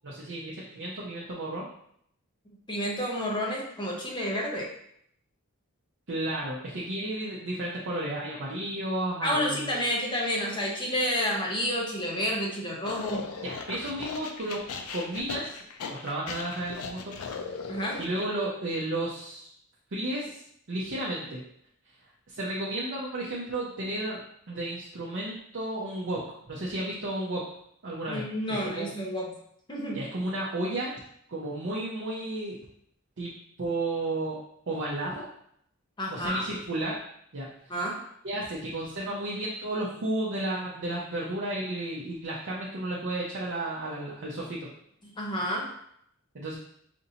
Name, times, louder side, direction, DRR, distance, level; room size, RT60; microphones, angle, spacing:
voice 1, 0.0-1.6 6.1-9.8 13.4-14.6 14.9-15.6 16.0-17.6 18.0-19.5 19.9-20.4 20.7-21.4 22.3-24.2 24.5-26.2 26.5-27.4 27.8-28.2 28.6-28.9 29.9-30.9 31.3-32.6 33.2-33.3 33.6-34.4 34.7-35.2 36.1-37.0 37.3-37.5 38.2-44.7 46.3-46.5, right 1 dB, 55° right, -5 dB, 0.6 m, -32 dB
voice 2, 2.7-4.7 9.2-13.3 17.7-18.0 28.1-29.3 29.7-30.0 36.0-36.4 37.7-38.0 45.0-45.7, equal, 20° left, -2 dB, 0.9 m, -30 dB
sound 1, 12.8-18.3, left 5 dB, 85° left, 0.5 m, -38 dB
5.1 x 2.7 x 2.8 m, 0.69 s
head